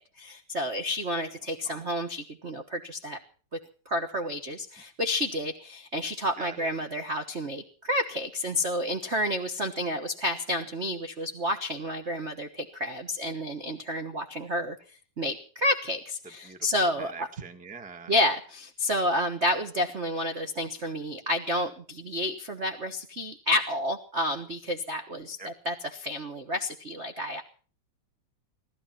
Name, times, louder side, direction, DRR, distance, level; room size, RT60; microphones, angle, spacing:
voice 1, 0.2-3.2 3.9-14.8 15.2-17.3 18.1-27.4, left 1 dB, 50° right, 5 dB, 0.8 m, -30 dB
voice 2, 6.4-6.7 16.4-16.6 17.0-18.1 25.4-25.5, right 5 dB, 5° right, 7 dB, 0.6 m, -43 dB
18.5 x 13.0 x 6.0 m, 0.42 s
omnidirectional pair, 3.3 m